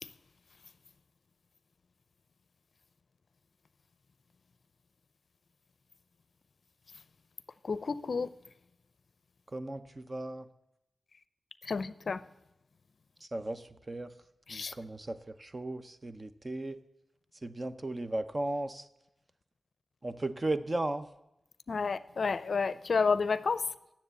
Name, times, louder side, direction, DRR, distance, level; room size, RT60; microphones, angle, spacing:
voice 1, 7.6-8.3 11.7-12.2 14.5-14.7 21.7-23.6, left 4 dB, 65° left, 16 dB, 0.5 m, -30 dB
voice 2, 9.5-10.5 13.2-14.1 14.5-16.8 17.4-18.9 20.0-21.1, right 2 dB, 30° right, 11 dB, 0.7 m, -36 dB
10.0 x 7.3 x 8.0 m, 0.88 s
wide cardioid pair, 80°, 0 cm